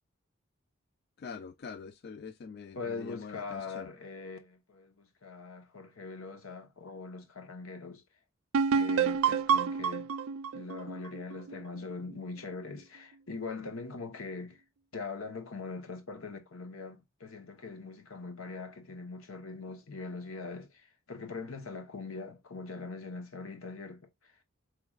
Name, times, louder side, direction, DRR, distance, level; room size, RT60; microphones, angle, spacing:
voice 1, 1.2-3.9, left 5 dB, 50° left, 0.3 m, -44 dB
voice 2, 2.7-8.0 8.7-10.1 10.5-14.6 14.9-24.3, left 4 dB, 85° left, 1.0 m, -42 dB
sound 1, 8.5-12.1, right 6 dB, 85° right, 0.4 m, -29 dB
4.6 x 3.3 x 2.3 m
head